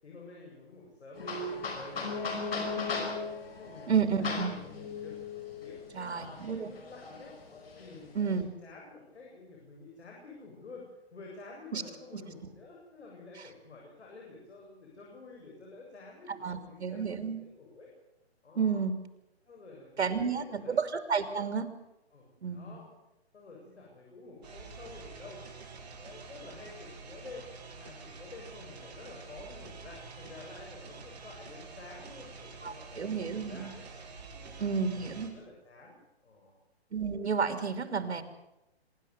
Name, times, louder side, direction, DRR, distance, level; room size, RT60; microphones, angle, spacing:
voice 1, 0.0-5.2 5.6-7.4 7.8-17.9 18.4-18.8 19.5-20.8 22.1-22.9 23.3-25.4 25.8-27.5 27.8-33.9 34.3-36.6, left 3 dB, 85° left, -2 dB, 7.8 m, -50 dB
sound 1, 1.1-8.4, left 4 dB, 65° left, 5.6 m, -37 dB
voice 2, 3.9-4.5 5.9-6.7 8.1-8.5 11.7-11.8 16.4-17.4 18.6-19.0 20.0-21.6 22.4-22.8 32.6-33.7 34.6-35.3 36.9-38.2, right 6 dB, 80° right, 9 dB, 3.1 m, -31 dB
sound 2, 24.4-35.3, right 4 dB, 40° right, 5.1 m, -48 dB
24.5 x 11.5 x 9.7 m, 0.90 s
hypercardioid pair, 170°, 33 cm